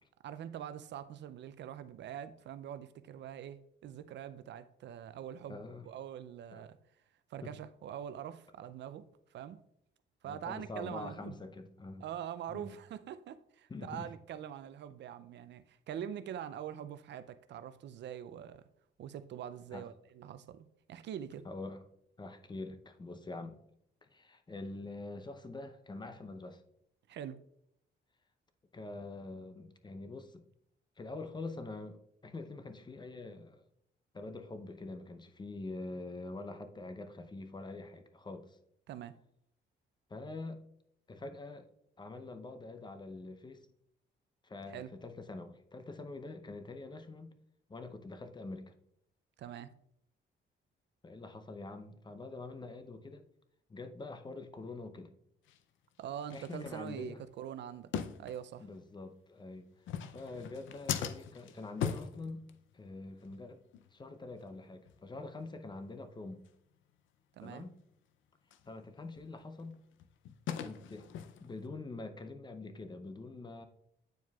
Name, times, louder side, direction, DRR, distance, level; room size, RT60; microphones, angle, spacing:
voice 1, 0.2-6.8 7.3-9.1 9.3-9.6 10.2-11.4 12.0-18.7 19.0-21.5 27.1-27.4 38.9-39.2 44.7-44.9 49.4-49.7 56.0-57.9 58.2-58.7 67.4-67.6, right 9 dB, 65° right, 0.4 m, -44 dB
voice 2, 5.5-5.9 6.5-6.7 7.4-7.5 10.3-12.1 12.5-12.7 13.7-14.1 19.7-19.9 21.4-21.8 22.2-23.6 24.0-26.6 28.7-30.4 31.0-33.6 34.1-38.6 40.1-40.6 41.1-41.7 42.0-43.7 44.4-47.3 47.7-48.7 51.0-53.3 53.7-55.1 56.3-57.2 58.6-62.4 62.7-63.6 63.9-66.4 67.4-67.8 68.7-69.8 70.6-71.1 71.4-73.6, left 3 dB, 20° left, 0.6 m, -45 dB
sound 1, 55.5-55.6 56.2-57.3 57.9-58.8 59.7-62.9 63.2-63.4 63.7-63.9 64.4-64.5 64.9-65.0 65.4-65.5 65.9-66.0 66.5-66.6 68.5-68.7 69.2-71.7, left 8 dB, 75° left, 0.5 m, -40 dB
9.1 x 4.6 x 2.3 m
cardioid pair, 90°, 20 cm